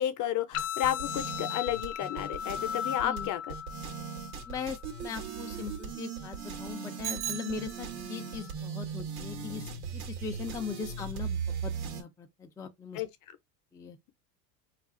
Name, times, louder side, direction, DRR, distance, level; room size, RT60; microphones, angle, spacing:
voice 1, 0.0-3.5 12.9-13.1, left 11 dB, 45° left, 0.7 m, -32 dB
sound 1, 0.5-8.5, left 9 dB, 90° left, 0.5 m, -39 dB
sound 2, 0.5-12.0, right 6 dB, 85° right, 1.1 m, -38 dB
voice 2, 4.5-13.0 13.7-14.1, left 6 dB, 10° left, 0.3 m, -40 dB
Bicycle bell, 7.0-8.3, right 9 dB, 60° right, 0.7 m, -38 dB
2.4 x 2.4 x 3.6 m
supercardioid pair, 110°, 42 cm